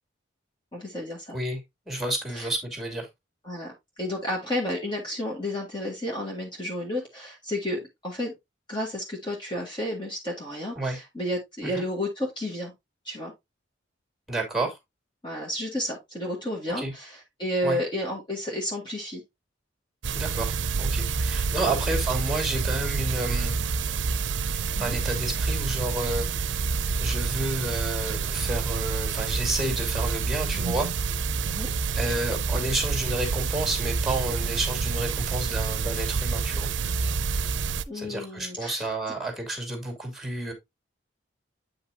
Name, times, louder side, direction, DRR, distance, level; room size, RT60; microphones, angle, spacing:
voice 1, 0.7-1.4 2.3-2.5 3.4-8.3 8.7-12.7 13.1-13.3 15.2-19.2 21.7-21.9 24.7-25.0 31.4-31.7 37.9-38.9, left 1 dB, 25° left, 1.9 m, -32 dB
voice 2, 1.9-3.1 10.8-11.0 11.6-11.8 14.3-14.8 16.8-16.9 17.6-17.8 20.1-23.6 24.8-26.3 27.0-30.9 31.9-36.7 37.9-40.5, right 2 dB, ahead, 2.6 m, -30 dB
sound 1, 20.0-37.8, right 5 dB, 75° right, 0.6 m, -28 dB
8.7 x 5.5 x 2.7 m
head